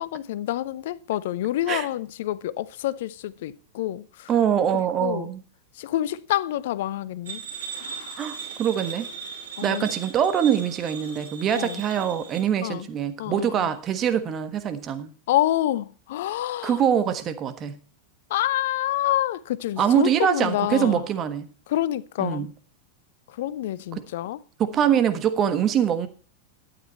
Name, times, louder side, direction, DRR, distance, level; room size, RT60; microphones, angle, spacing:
voice 1, 0.0-4.0 4.7-5.3 5.8-7.4 7.8-8.1 9.6-9.9 11.5-11.8 12.6-12.9 13.2-13.7 15.3-16.7 18.3-21.0 21.7-22.5 23.4-24.4, left 13 dB, 55° left, 0.6 m, -27 dB
voice 2, 4.3-5.4 8.2-9.1 9.6-15.1 16.6-17.8 19.8-21.5 22.2-22.5 23.9-24.0 24.6-26.1, right 9 dB, 30° right, 1.4 m, -24 dB
sound 1, 7.3-12.4, right 5 dB, 65° right, 6.7 m, -37 dB
12.0 x 9.4 x 4.3 m
figure-of-eight pair, 90°, 0 cm